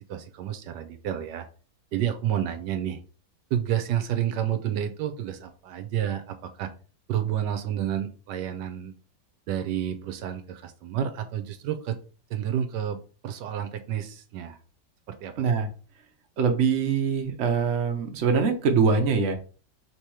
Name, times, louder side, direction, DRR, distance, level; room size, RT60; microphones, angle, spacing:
voice 1, 0.0-1.5 1.9-3.0 3.5-6.7 7.1-8.9 9.5-12.0 12.3-14.6 15.1-15.3, right 10 dB, 80° right, 8 dB, 1.2 m, -30 dB
voice 2, 15.4-15.7 16.4-19.4, right 5 dB, 55° right, 4 dB, 0.9 m, -23 dB
3.5 x 2.9 x 4.7 m, 0.38 s
omnidirectional pair, 1.8 m